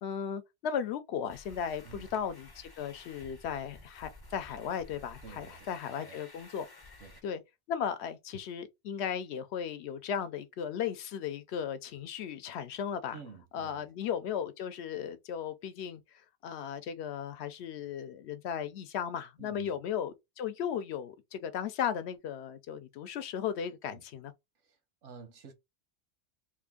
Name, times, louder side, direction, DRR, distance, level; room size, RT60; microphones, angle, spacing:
voice 1, 0.0-6.7 7.2-7.4 7.7-13.2 13.5-16.0 16.4-24.3, left 8 dB, 70° left, 0.8 m, -36 dB
sound 1, 1.3-7.2, left 2 dB, 25° left, 0.6 m, -53 dB
voice 2, 5.2-5.7 6.0-6.2 7.0-7.2 13.1-13.9 19.4-19.8 23.9-24.0 24.6-25.5, right 5 dB, 90° right, 1.2 m, -50 dB
3.0 x 2.5 x 3.6 m
omnidirectional pair, 1.2 m